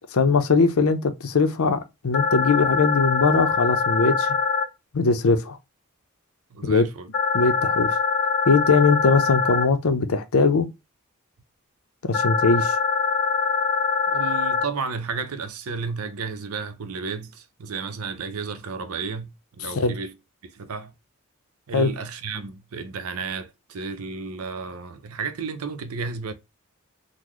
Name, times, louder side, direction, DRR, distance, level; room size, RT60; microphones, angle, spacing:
voice 1, 0.1-4.3 4.9-5.6 6.6-6.9 7.3-7.9 8.5-10.7 12.0-12.8 19.6-19.9 21.7-21.9, left 4 dB, 80° left, 0.6 m, -20 dB
sound 1, 2.1-4.6 7.1-9.6 12.1-14.6, left 5 dB, 50° left, 1.3 m, -23 dB
voice 2, 6.5-7.1 14.1-20.1 20.4-20.9 21.7-26.3, right 5 dB, 90° right, 0.6 m, -32 dB
3.8 x 2.1 x 3.0 m
head